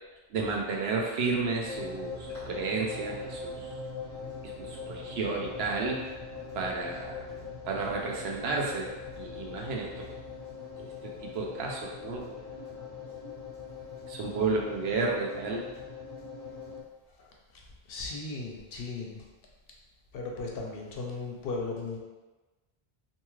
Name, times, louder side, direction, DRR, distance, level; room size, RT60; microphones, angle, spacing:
voice 1, 0.3-3.7 4.4-6.0 6.5-7.2 7.7-8.9 9.2-10.1 10.8-12.4 14.1-15.6, right 4 dB, 80° right, -1 dB, 0.8 m, -32 dB
sound 1, 1.6-16.8, left 4 dB, 40° right, 1.2 m, -41 dB
voice 2, 17.2-19.3 20.1-22.0, left 3 dB, 70° left, -1 dB, 0.8 m, -37 dB
2.7 x 2.3 x 3.0 m, 1.2 s
omnidirectional pair, 1.0 m